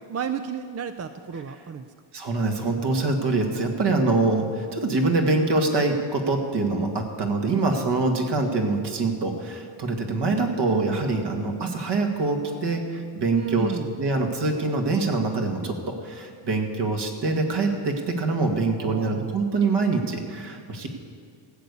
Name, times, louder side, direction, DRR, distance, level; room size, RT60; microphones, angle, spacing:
voice 1, 0.1-1.9 13.3-13.9 18.8-19.6, right 7 dB, 30° right, 10 dB, 0.5 m, -32 dB
voice 2, 2.1-13.7 14.0-20.9, right 3 dB, 55° right, 3 dB, 1.9 m, -24 dB
16.0 x 6.8 x 8.4 m, 2.1 s
cardioid pair, 95°, 50 cm